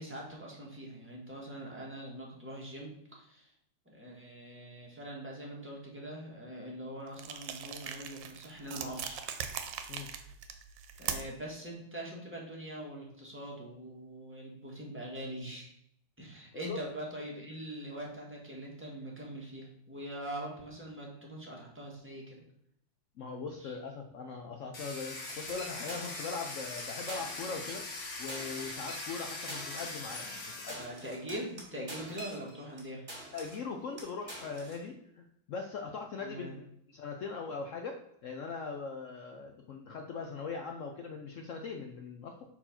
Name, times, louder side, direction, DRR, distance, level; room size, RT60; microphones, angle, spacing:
voice 1, 0.0-3.5 3.8-9.2 11.0-15.7 16.2-22.4 23.6-23.8 30.5-33.0 36.2-36.6, right 1 dB, 5° right, -3 dB, 1.4 m, -43 dB
sound 1, 7.1-11.5, right 8 dB, 85° right, 1.4 m, -40 dB
voice 2, 23.2-27.8 28.2-30.8 33.3-36.7 36.9-42.4, left 4 dB, 75° left, 3 dB, 0.7 m, -40 dB
Domestic sounds home sounds, 24.7-30.7, left 3 dB, 45° left, 1.3 m, -41 dB
sound 2, 25.3-26.5 26.8-26.9 27.1-28.0 28.3-32.8 33.1-33.7 34.0-34.8, right 1 dB, 35° right, 2.1 m, -46 dB
4.4 x 4.1 x 5.7 m, 0.72 s
omnidirectional pair, 2.0 m